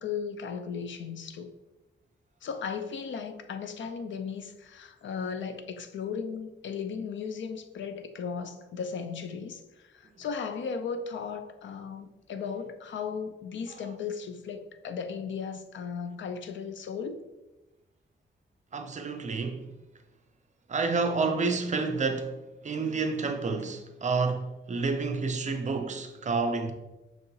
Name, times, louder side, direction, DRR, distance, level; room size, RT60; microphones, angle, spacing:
voice 1, 0.0-1.5 2.4-17.2, left 6 dB, 70° left, 0.4 m, -36 dB
voice 2, 18.7-19.7 20.7-22.4 22.6-26.7, right 4 dB, 40° right, 0.4 m, -29 dB
5.8 x 2.8 x 2.6 m
wide cardioid pair, 140°, 20 cm